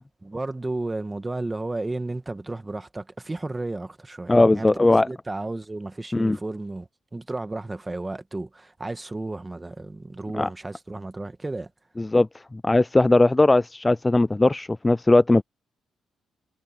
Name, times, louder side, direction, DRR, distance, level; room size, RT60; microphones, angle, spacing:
voice 1, 0.2-11.7, right 2 dB, 15° right, 1.9 m, -33 dB
voice 2, 4.3-5.1 6.1-6.4 10.3-10.5 12.0-15.4, left 2 dB, 15° left, 0.4 m, -19 dB
cardioid pair, 90°, 0 cm